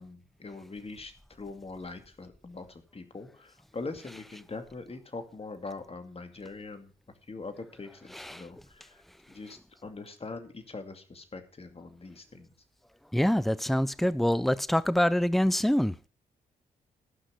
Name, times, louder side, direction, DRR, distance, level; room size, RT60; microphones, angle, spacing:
voice 1, 0.0-6.9 7.3-9.0 9.3-12.5, left 3 dB, 35° left, 2.4 m, -42 dB
voice 2, 8.1-8.5 13.1-16.0, equal, ahead, 0.6 m, -26 dB
14.0 x 6.1 x 6.3 m
supercardioid pair, 55°, 17 cm